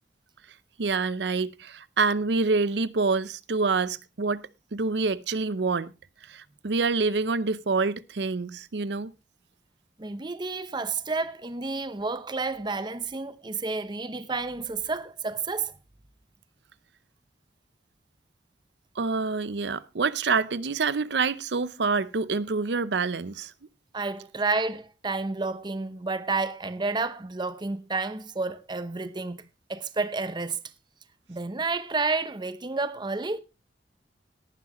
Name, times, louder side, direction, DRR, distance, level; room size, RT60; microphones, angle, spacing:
voice 1, 0.8-4.4 4.7-5.9 6.3-9.1 19.0-23.5, right 4 dB, 70° right, 0.7 m, -27 dB
voice 2, 10.0-15.8 23.9-29.4 29.7-30.6 31.3-33.4, right 3 dB, 25° right, 0.8 m, -30 dB
18.0 x 9.5 x 3.0 m
head